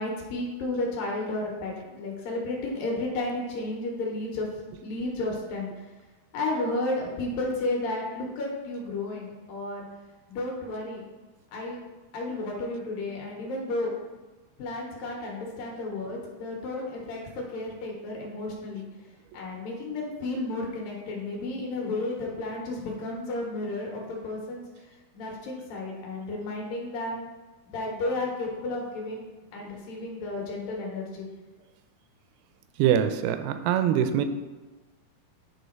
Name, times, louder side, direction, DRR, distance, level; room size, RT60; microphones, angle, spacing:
voice 1, 0.0-4.5 4.8-5.7 6.3-9.8 10.3-11.0 11.5-11.8 12.1-13.9 14.6-18.9 19.3-24.6 25.1-27.2 27.7-29.3 29.5-31.3, left 2 dB, 70° left, -1 dB, 2.6 m, -32 dB
voice 2, 32.8-34.2, right 9 dB, 80° right, 9 dB, 2.3 m, -23 dB
9.4 x 3.4 x 4.5 m, 1.2 s
omnidirectional pair, 4.6 m